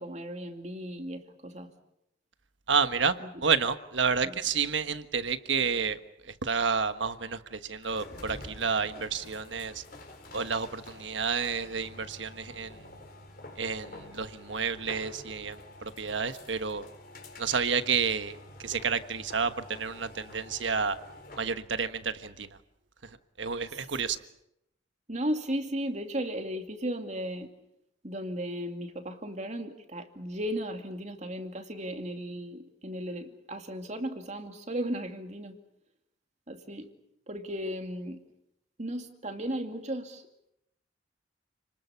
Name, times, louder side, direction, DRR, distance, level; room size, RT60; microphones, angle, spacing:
voice 1, 0.0-1.7 3.2-3.4 4.2-4.3 23.7-23.9 25.1-27.5 28.0-35.6 36.5-36.9 37.3-38.2 38.8-40.3, equal, 40° right, 5 dB, 2.4 m, -35 dB
voice 2, 2.7-6.0 6.4-9.8 10.3-12.8 13.6-16.9 17.4-21.0 21.4-22.5 23.4-24.2, right 5 dB, 75° right, 10 dB, 1.4 m, -30 dB
sound 1, 7.8-21.6, left 1 dB, 50° left, 4.4 m, -48 dB
30.0 x 20.5 x 7.1 m, 0.82 s
head